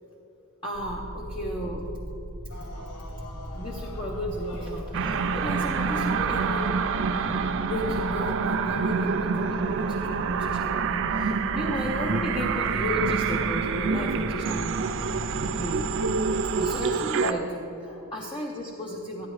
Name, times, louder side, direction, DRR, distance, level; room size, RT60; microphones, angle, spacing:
voice 1, 0.6-1.9 3.6-6.7 7.3-14.9 15.6-15.9 16.6-17.5 17.8-19.3, equal, 20° left, -3 dB, 0.8 m, -34 dB
sound 1, 0.7-16.8, right 1 dB, 45° left, 1.2 m, -39 dB
sound 2, 2.5-9.7 10.7-10.8, left 1 dB, 75° left, 1.2 m, -48 dB
sound 3, 4.9-17.3, right 5 dB, 60° right, 0.4 m, -27 dB
13.0 x 9.7 x 3.2 m, 2.8 s
head